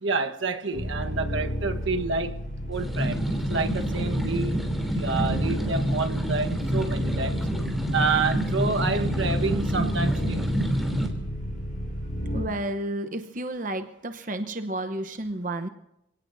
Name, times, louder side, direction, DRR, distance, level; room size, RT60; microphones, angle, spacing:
voice 1, 0.0-2.4 2.7-3.2 3.5-4.7 5.0-7.4 7.9-10.5, right 4 dB, 80° right, 6 dB, 1.4 m, -28 dB
sound 1, 0.7-12.4, equal, 50° left, 6.2 m, -32 dB
sound 2, 2.7-11.1, equal, ahead, 3.1 m, -28 dB
voice 2, 12.3-15.7, right 1 dB, 40° right, 8 dB, 0.9 m, -31 dB
28.0 x 18.0 x 2.7 m, 0.85 s
head